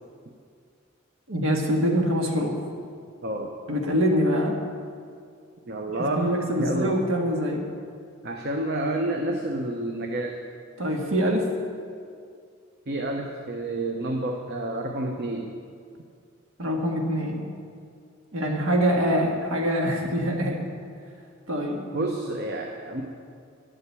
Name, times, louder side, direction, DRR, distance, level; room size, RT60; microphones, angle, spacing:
voice 1, 1.3-2.6 3.7-4.6 6.1-7.6 10.8-11.5 16.6-17.5 18.3-20.6 21.5-21.8, equal, 85° right, 1 dB, 1.7 m, -24 dB
voice 2, 3.2-3.5 5.7-7.0 8.2-10.4 12.9-15.6 21.9-23.0, right 1 dB, 55° right, 2 dB, 0.9 m, -29 dB
11.5 x 7.9 x 8.3 m, 2.2 s
head